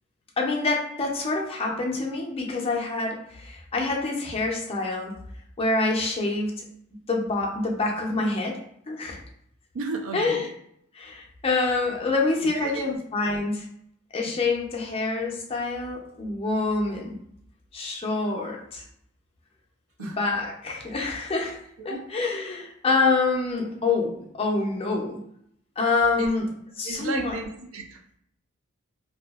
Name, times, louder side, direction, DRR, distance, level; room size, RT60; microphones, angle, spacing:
voice 1, 0.4-5.1 5.6-6.5 7.1-8.6 8.9-9.2 10.1-10.5 10.9-13.7 14.1-17.2 17.7-18.8 20.0-21.6 21.8-25.2 25.8-26.5 26.8-27.4, left 3 dB, 25° left, 0 dB, 0.5 m, -26 dB
voice 2, 9.7-10.5 12.4-12.8 20.0-20.2 21.8-22.1 26.2-26.3 26.8-28.2, right 3 dB, 70° right, 4 dB, 0.4 m, -34 dB
2.6 x 2.3 x 2.3 m, 0.70 s
head